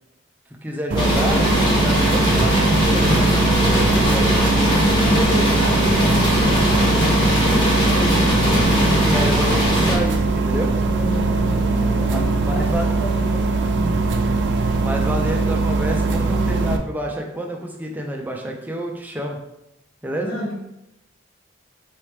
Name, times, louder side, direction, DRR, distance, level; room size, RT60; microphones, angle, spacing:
voice 1, 0.6-4.5 8.8-10.7 12.1-12.9 14.0-19.4 20.0-20.4, equal, 10° right, 0 dB, 0.5 m, -28 dB
sound 1, 0.9-16.8, right 3 dB, 65° right, 0.4 m, -21 dB
sound 2, 1.0-10.0, left 1 dB, 25° left, 0.9 m, -20 dB
voice 2, 4.8-8.9 10.9-13.9 20.2-20.6, equal, 75° left, -6 dB, 0.9 m, -30 dB
4.7 x 2.9 x 3.3 m, 0.86 s
head